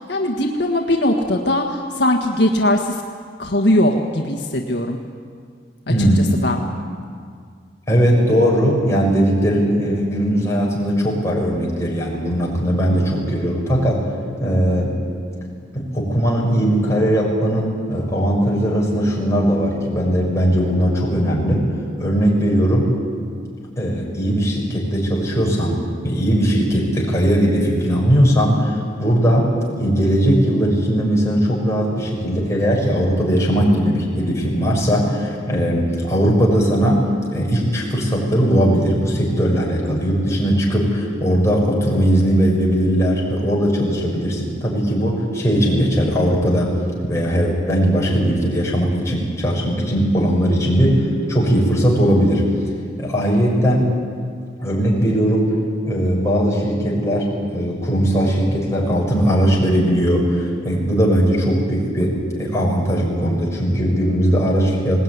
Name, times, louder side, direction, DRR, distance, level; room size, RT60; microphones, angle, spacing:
voice 1, 0.0-3.0 3.4-5.0 5.9-6.6, left 1 dB, 65° left, 1 dB, 1.6 m, -20 dB
voice 2, 5.9-6.3 7.9-14.1 14.4-15.0 15.7-21.7 22.0-22.9 23.8-46.7 47.1-52.5 53.0-53.9 54.6-55.5 55.8-65.0, equal, 15° left, -4 dB, 6.3 m, -19 dB
20.0 x 19.0 x 9.6 m, 2.1 s
head